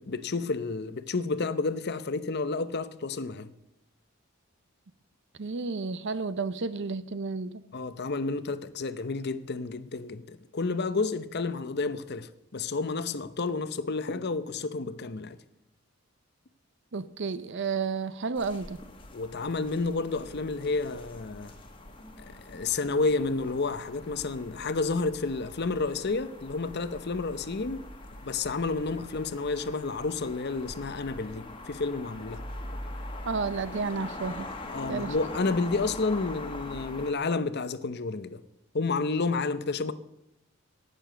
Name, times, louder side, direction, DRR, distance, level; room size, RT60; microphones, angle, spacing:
voice 1, 0.0-3.5 7.7-15.4 19.1-21.5 22.3-27.9 28.2-32.4 34.7-38.4 38.7-39.9, left 3 dB, 50° left, 0.7 m, -30 dB
voice 2, 5.4-7.6 16.9-18.8 33.2-34.5 34.8-35.1, right 4 dB, 55° right, 0.6 m, -31 dB
sound 1, 18.3-37.1, left 2 dB, 25° left, 1.6 m, -43 dB
18.0 x 6.9 x 6.8 m
head